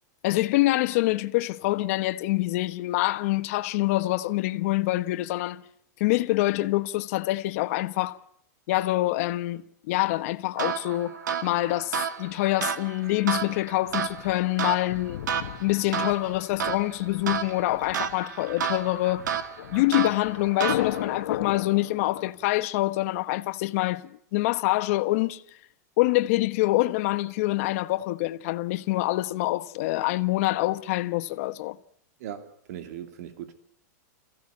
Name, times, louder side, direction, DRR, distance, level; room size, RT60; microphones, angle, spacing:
voice 1, 0.2-5.6 6.0-8.2 8.7-11.1 11.4-15.2 15.6-19.3 19.7-25.4 26.0-31.8, left 18 dB, 55° left, 1.2 m, -26 dB
sound 1, 10.6-21.2, right 7 dB, 85° right, 2.2 m, -32 dB
Thunder, 13.4-22.3, left 13 dB, 70° left, 1.8 m, -37 dB
voice 2, 32.2-33.5, right 10 dB, 60° right, 3.0 m, -39 dB
27.5 x 16.0 x 8.6 m
supercardioid pair, 145°, 9 cm